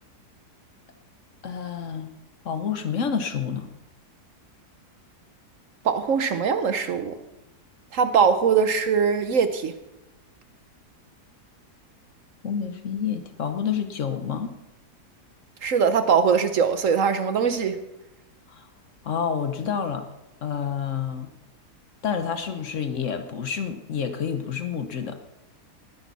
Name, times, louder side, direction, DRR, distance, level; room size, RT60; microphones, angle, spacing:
voice 1, 1.4-2.1 2.4-3.7 12.4-14.5 18.5-18.7 19.0-20.1 20.4-21.3 22.0-25.2, left 7 dB, 55° left, 8 dB, 1.1 m, -28 dB
voice 2, 5.8-7.2 7.9-9.7 15.6-17.8, right 6 dB, 60° right, 10 dB, 1.0 m, -21 dB
19.0 x 10.5 x 4.1 m, 0.97 s
omnidirectional pair, 1.7 m